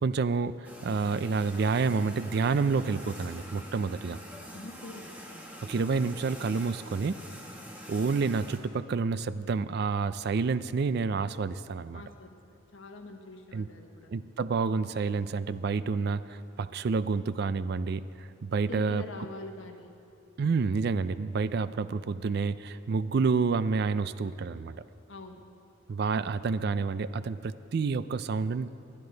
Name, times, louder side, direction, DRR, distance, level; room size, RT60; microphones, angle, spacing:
voice 1, 0.0-4.2 5.6-7.2 7.9-12.0 13.5-13.7 14.1-19.0 20.4-24.8 25.9-28.7, right 4 dB, 50° right, 15 dB, 0.4 m, -29 dB
sound 1, 0.6-8.6, equal, 10° right, 1.4 m, -45 dB
voice 2, 4.5-5.1 11.9-14.1 18.7-19.9 25.1-25.4, left 2 dB, 65° left, 4 dB, 1.3 m, -44 dB
20.5 x 12.5 x 3.9 m, 2.6 s
head